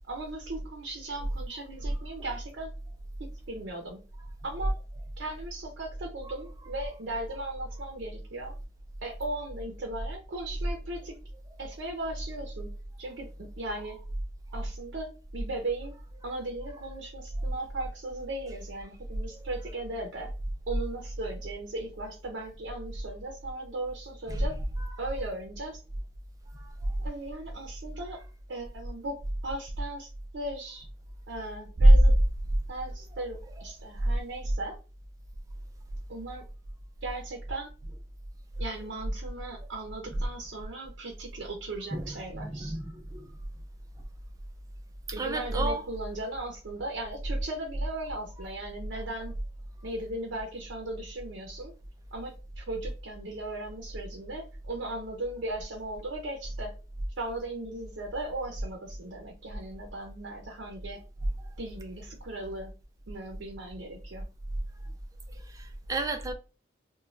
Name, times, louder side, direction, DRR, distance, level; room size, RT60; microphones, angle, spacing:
voice 1, 0.1-2.7 3.2-4.0 4.4-4.7 5.2-8.5 9.0-11.2 11.6-14.0 14.5-15.9 16.2-20.3 20.7-24.6 25.0-25.8 27.0-28.2 28.5-29.2 29.4-30.8 31.3-32.1 32.7-34.8 36.1-36.4 37.0-37.7 38.6-42.8 45.1-49.4 49.8-51.7 52.1-56.7 57.2-61.0 61.6-62.7 63.1-64.3, right 2 dB, 80° right, 0.6 m, -37 dB
voice 2, 26.5-26.9 41.9-43.3 45.2-45.8 65.5-66.3, right 2 dB, 20° right, 0.3 m, -33 dB
2.5 x 2.2 x 3.1 m
head